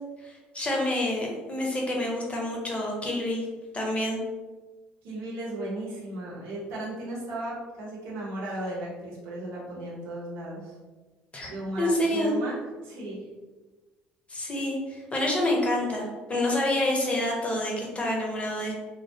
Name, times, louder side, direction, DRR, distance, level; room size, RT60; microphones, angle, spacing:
voice 1, 0.2-3.5 3.7-4.2 11.3-11.5 11.8-12.4 14.3-18.7, left 1 dB, 25° left, -1 dB, 0.7 m, -28 dB
voice 2, 5.0-10.7 11.5-13.3, right 1 dB, 70° right, -6 dB, 0.9 m, -35 dB
2.3 x 2.0 x 2.6 m, 1.3 s
hypercardioid pair, 60°, 5 cm